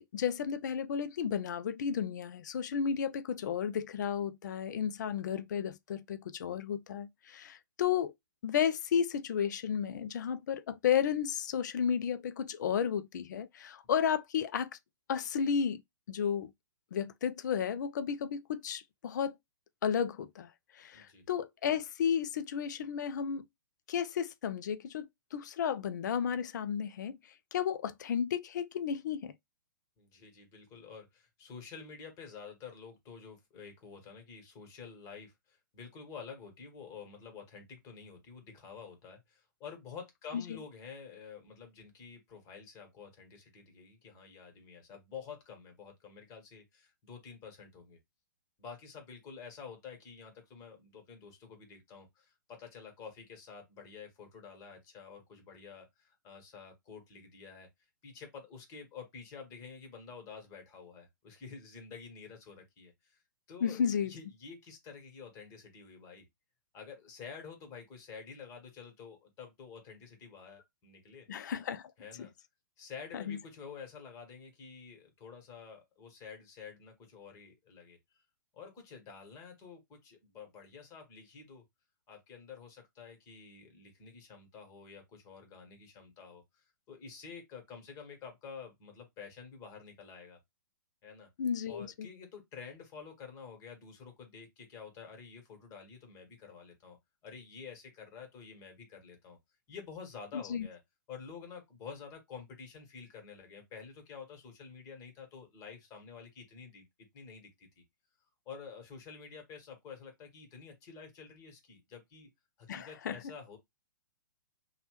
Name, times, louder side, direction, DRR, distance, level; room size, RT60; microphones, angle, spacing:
voice 1, 0.0-8.1 8.4-14.7 15.1-15.8 16.1-16.5 16.9-19.3 19.8-20.5 20.8-23.5 23.9-27.2 27.5-29.3 40.3-40.4 63.6-64.1 71.3-71.8 73.1-73.4 91.4-92.1 100.3-100.7 112.7-113.2, left 8 dB, 60° left, 0.4 m, -33 dB
voice 2, 20.9-21.2 30.0-48.0 48.6-57.7 58.0-63.2 63.5-66.3 66.7-71.3 72.0-72.3 72.8-78.2 78.5-81.6 82.1-90.4 91.0-91.3 91.7-97.0 97.2-99.4 99.7-100.8 101.1-106.8 107.1-107.8 108.4-112.3 112.6-113.6, left 6 dB, 30° left, 1.3 m, -49 dB
2.9 x 2.3 x 3.1 m
figure-of-eight pair, 120°, 11 cm